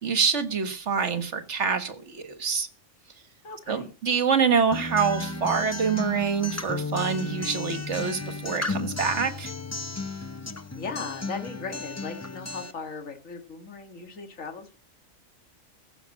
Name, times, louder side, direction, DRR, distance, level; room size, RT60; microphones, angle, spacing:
voice 1, 0.0-2.7 3.7-9.5, right 6 dB, 60° right, 9 dB, 1.7 m, -26 dB
voice 2, 3.4-3.9 10.7-14.8, left 4 dB, 75° left, 4 dB, 2.2 m, -38 dB
Acoustic guitar, 4.7-12.7, left 2 dB, 15° left, 0.6 m, -34 dB
15.0 x 5.9 x 7.6 m, 0.35 s
omnidirectional pair, 1.4 m